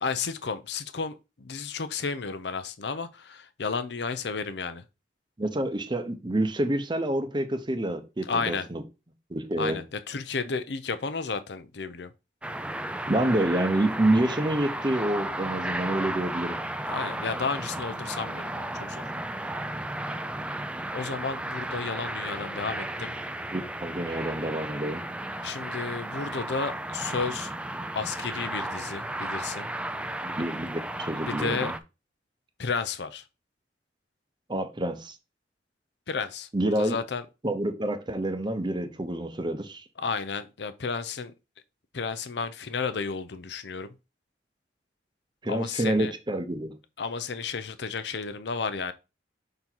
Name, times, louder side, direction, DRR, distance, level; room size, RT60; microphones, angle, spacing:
voice 1, 0.0-4.8 8.3-8.7 9.6-12.1 16.9-19.0 20.9-23.2 25.4-27.5 27.9-29.7 31.3-31.7 32.6-33.2 36.1-37.2 40.0-41.3 41.9-43.9 45.5-46.1 47.0-48.9, left 5 dB, 70° left, 0.6 m, -32 dB
voice 2, 5.4-8.8 9.3-9.8 13.1-16.6 23.5-25.0 30.2-31.7 34.5-35.2 36.5-37.0 37.4-39.8 45.4-46.7, right 1 dB, 25° right, 0.8 m, -28 dB
sound 1, 12.4-31.8, right 1 dB, 5° right, 0.4 m, -34 dB
5.5 x 3.9 x 4.5 m
head